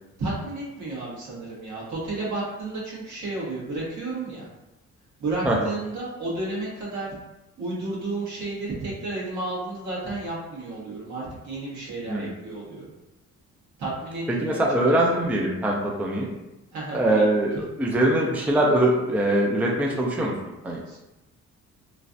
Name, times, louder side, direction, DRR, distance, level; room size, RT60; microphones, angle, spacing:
voice 1, 0.2-4.5 5.2-7.1 7.6-12.8 13.8-14.6 16.7-17.2 20.9-21.0, right 2 dB, 70° right, -7 dB, 1.5 m, -32 dB
voice 2, 14.3-16.3 16.9-20.3 20.6-20.8, right 1 dB, 5° right, -1 dB, 0.4 m, -22 dB
3.1 x 2.4 x 2.6 m, 0.97 s
cardioid pair, 90°, 30 cm